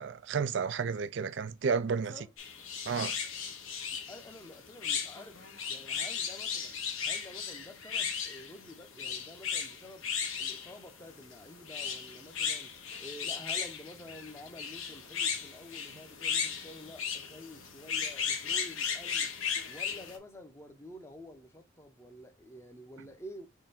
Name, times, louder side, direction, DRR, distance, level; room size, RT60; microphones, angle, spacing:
voice 1, 0.0-2.1 2.9-3.2, right 5 dB, 60° right, 0.4 m, -31 dB
voice 2, 1.9-2.3 3.9-5.4 5.7-6.8 7.0-10.1 10.4-19.3 19.7-23.5, left 1 dB, 15° left, 0.7 m, -49 dB
sound 1, 2.4-20.2, left 6 dB, 85° left, 1.1 m, -36 dB
3.8 x 3.4 x 4.1 m
head